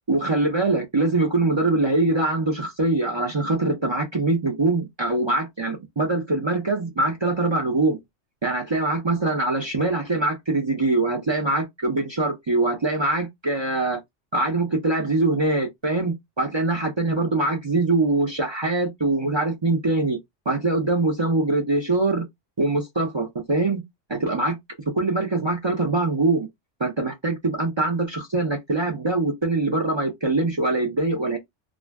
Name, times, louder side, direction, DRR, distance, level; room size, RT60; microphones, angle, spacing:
voice 1, 0.1-8.0 8.4-14.0 14.3-20.2 20.5-22.2 22.6-23.8 24.1-24.6 24.9-26.5 26.8-31.4, right 2 dB, 45° right, 0.3 m, -23 dB
2.5 x 2.1 x 3.3 m
omnidirectional pair, 1.3 m